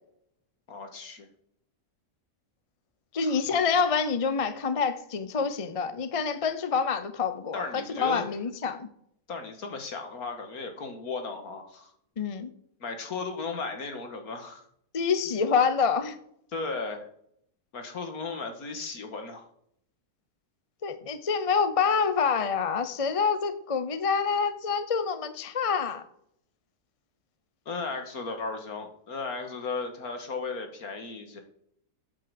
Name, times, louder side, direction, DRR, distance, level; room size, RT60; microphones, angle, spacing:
voice 1, 0.7-1.3 3.2-3.4 7.5-8.2 9.3-11.9 12.8-14.7 16.5-17.1 17.7-19.5 27.7-31.4, left 4 dB, 65° left, 6 dB, 2.1 m, -35 dB
voice 2, 3.1-8.9 12.2-12.5 14.9-16.2 20.8-26.0, left 5 dB, 30° left, 10 dB, 0.6 m, -27 dB
8.6 x 5.7 x 7.9 m, 0.70 s
omnidirectional pair, 1.7 m